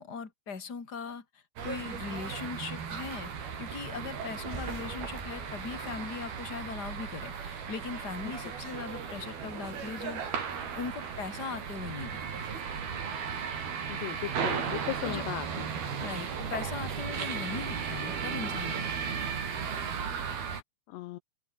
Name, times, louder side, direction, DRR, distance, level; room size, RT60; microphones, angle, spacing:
voice 1, 0.0-10.4 10.7-12.5 15.0-15.2 16.0-19.2, left 5 dB, 25° left, 3.2 m, -40 dB
sound 1, 1.6-20.6, right 6 dB, 55° right, 5.7 m, -36 dB
sound 2, 4.2-6.9, right 2 dB, 25° right, 0.6 m, -46 dB
voice 2, 13.9-15.7 20.9-21.2, left 16 dB, 80° left, 2.7 m, -37 dB
open air
omnidirectional pair, 5.5 m